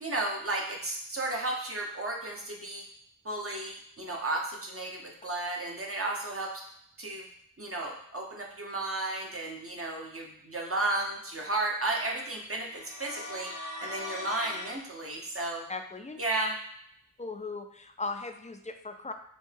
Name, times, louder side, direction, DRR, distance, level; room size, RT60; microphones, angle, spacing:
voice 1, 0.0-2.8 3.2-6.6 7.0-7.3 7.6-13.5 13.8-15.6 16.2-16.6, right 2 dB, 40° right, -1 dB, 0.9 m, -33 dB
sound 1, 12.6-14.8, left 2 dB, 65° left, 0.9 m, -40 dB
voice 2, 15.7-16.2 17.2-19.1, left 3 dB, 20° left, 6 dB, 0.4 m, -38 dB
5.2 x 2.2 x 3.3 m, 0.70 s
wide cardioid pair, 50°, 33 cm